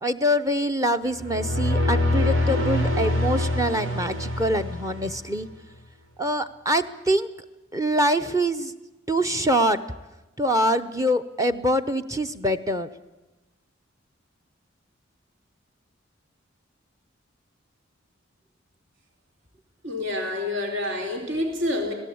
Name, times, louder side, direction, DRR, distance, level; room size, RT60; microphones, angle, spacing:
voice 1, 0.0-5.5 6.2-7.3 7.7-8.7 9.1-9.8 10.4-12.9, equal, 15° right, 9 dB, 0.7 m, -24 dB
sound 1, 1.1-5.4, left 1 dB, 85° right, 4.6 m, -25 dB
voice 2, 19.8-21.9, left 1 dB, 65° right, 3 dB, 3.4 m, -27 dB
25.5 x 17.5 x 8.6 m, 1.1 s
head